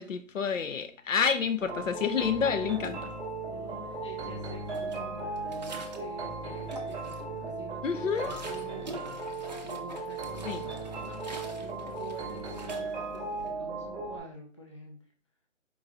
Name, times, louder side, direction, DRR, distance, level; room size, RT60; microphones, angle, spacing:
voice 1, 0.0-3.1 7.8-8.4 10.5-10.6, left 6 dB, 75° left, 10 dB, 0.7 m, -29 dB
sound 1, 1.6-14.2, right 3 dB, 10° right, 0.8 m, -37 dB
sound 2, 2.8-3.6 4.0-6.2 6.5-7.4 7.8-13.5, right 2 dB, 35° right, 0.5 m, -47 dB
voice 2, 3.5-15.0, right 2 dB, 25° left, 0 dB, 0.5 m, -47 dB
4.6 x 2.7 x 3.6 m, 0.41 s
figure-of-eight pair, 155°, 38 cm